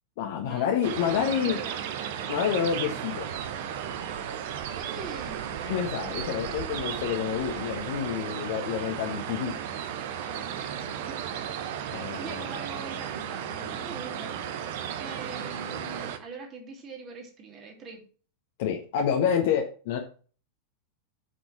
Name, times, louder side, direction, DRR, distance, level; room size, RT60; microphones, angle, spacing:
voice 1, 0.2-1.6 2.3-3.3 5.6-9.5 11.9-12.5 18.6-20.0, left 8 dB, 50° left, 1 dB, 1.4 m, -28 dB
sound 1, 0.8-16.2, right 9 dB, 50° right, 1.1 m, -34 dB
voice 2, 1.0-2.1 4.8-5.5 10.3-10.8 11.1-11.2 11.9-18.1, right 3 dB, 30° right, 2 dB, 3.1 m, -43 dB
7.8 x 6.2 x 6.0 m, 0.39 s
figure-of-eight pair, 90°, 0 cm